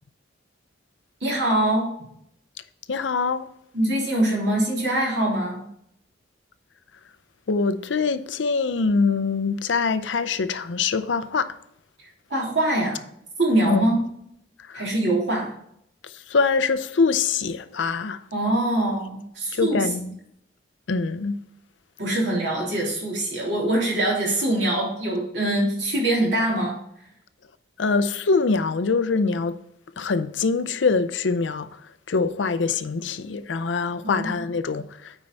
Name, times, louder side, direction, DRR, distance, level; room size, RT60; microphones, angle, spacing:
voice 1, 1.2-1.9 3.7-5.6 12.3-13.0 13.4-14.0 14.7-15.5 18.3-19.8 22.0-26.7 34.0-34.3, right 1 dB, 65° right, 3.3 m, -23 dB
voice 2, 2.9-3.5 7.5-11.6 13.7-13.9 14.7-14.8 16.0-18.2 19.5-20.2 20.9-21.4 27.8-29.6 30.0-31.8 32.1-35.1, left 4 dB, 75° left, 0.5 m, -24 dB
8.8 x 4.5 x 4.0 m
head